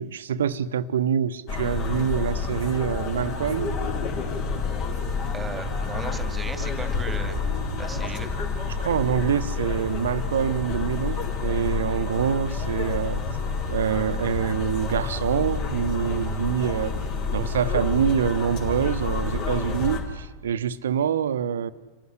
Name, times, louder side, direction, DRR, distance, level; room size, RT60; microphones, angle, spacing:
voice 1, 0.0-3.8 8.7-13.2 13.7-17.0 17.3-21.7, right 8 dB, 65° right, 14 dB, 0.9 m, -25 dB
sound 1, 1.5-20.0, left 4 dB, 40° left, 4.5 m, -29 dB
voice 2, 5.3-7.4 7.8-8.3, right 3 dB, 15° right, 10 dB, 2.1 m, -36 dB
27.5 x 15.0 x 9.9 m, 1.3 s
figure-of-eight pair, 90°, 0 cm